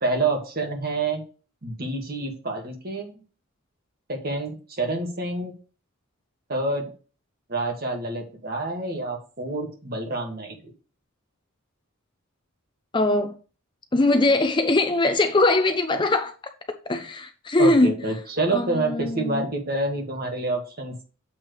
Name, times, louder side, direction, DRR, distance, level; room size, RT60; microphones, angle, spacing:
voice 1, 0.0-1.2 1.6-3.1 4.1-5.5 6.5-6.9 7.5-10.7 17.6-21.0, right 2 dB, 45° right, 1.6 m, -28 dB
voice 2, 12.9-13.3 13.9-16.3 16.9-17.9 18.5-19.4, left 2 dB, 20° left, 0.5 m, -21 dB
7.4 x 3.3 x 6.2 m
head